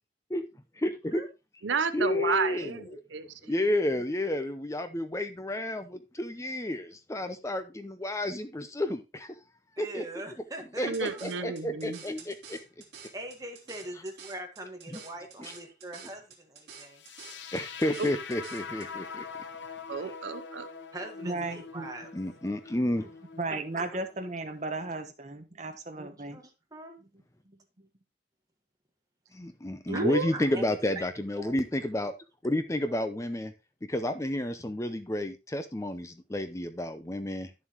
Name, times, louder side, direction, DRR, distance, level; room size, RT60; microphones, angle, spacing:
voice 1, 0.8-1.2 1.9-2.8 3.5-9.4 9.8-10.0 10.8-12.6 14.9-15.0 15.4-15.5 17.5-19.5 22.1-23.1 29.3-32.1 32.4-33.5 33.8-37.5, left 1 dB, 15° left, 9 dB, 0.5 m, -31 dB
voice 2, 1.6-3.5 10.9-12.0 18.0-18.1 19.9-20.7 29.9-30.3, right 5 dB, 80° right, 11 dB, 0.7 m, -31 dB
voice 3, 9.8-11.5 13.1-17.0 20.9-22.1 23.5-24.0 25.9-27.0 29.9-30.6 30.9-31.0 31.4-31.5, right 1 dB, 20° right, 3 dB, 1.6 m, -42 dB
sound 1, 10.9-18.9, right 6 dB, 60° right, 2.5 m, -49 dB
sound 2, 16.9-24.9, left 5 dB, 75° left, 0.8 m, -44 dB
voice 4, 21.2-21.9 23.4-26.4 27.5-27.6, right 2 dB, 40° right, 7 dB, 1.1 m, -35 dB
11.0 x 7.2 x 3.0 m, 0.27 s
head